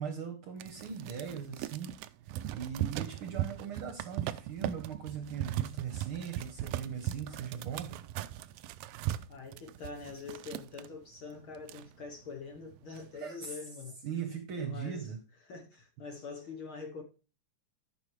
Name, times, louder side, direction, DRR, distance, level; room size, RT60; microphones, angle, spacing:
voice 1, 0.0-1.9 2.5-7.9 13.1-13.5 14.0-15.2, right 7 dB, 60° right, 1.5 m, -39 dB
sound 1, 0.6-10.9 11.3-11.4 11.6-12.3 12.7-13.1, right 13 dB, 90° right, 1.4 m, -38 dB
voice 2, 9.3-14.0 14.2-15.1 15.4-17.0, left 4 dB, 60° left, 1.6 m, -45 dB
13.0 x 5.8 x 3.2 m
omnidirectional pair, 3.4 m